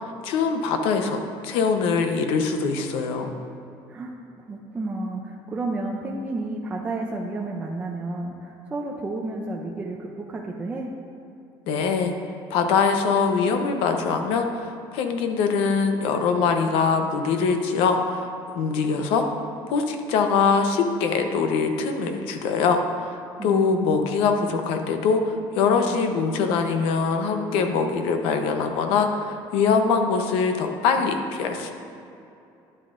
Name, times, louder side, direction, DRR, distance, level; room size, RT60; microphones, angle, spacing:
voice 1, 0.2-3.3 11.7-12.1 12.5-18.3 18.6-19.3 19.7-23.2 23.4-31.7, left 5 dB, 80° left, 5 dB, 0.9 m, -23 dB
voice 2, 3.9-10.9 23.4-24.0 24.2-24.5 25.8-26.2, right 2 dB, 15° right, -1 dB, 0.5 m, -32 dB
11.0 x 10.0 x 2.6 m, 2.7 s
cardioid pair, 180°, 9 cm